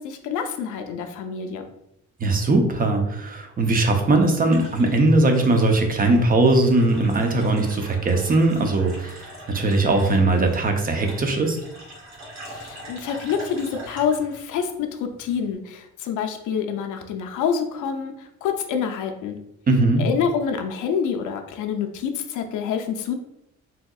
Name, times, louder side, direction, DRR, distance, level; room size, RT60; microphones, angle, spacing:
voice 1, 0.0-1.7 12.5-19.4 20.0-23.1, left 7 dB, 80° left, 5 dB, 0.5 m, -27 dB
voice 2, 2.2-11.6 19.7-20.0, right 2 dB, 30° right, 4 dB, 0.6 m, -20 dB
sound 1, 4.4-15.5, right 1 dB, 65° right, 1.3 m, -43 dB
3.4 x 2.8 x 2.3 m, 0.81 s
cardioid pair, 90°, 30 cm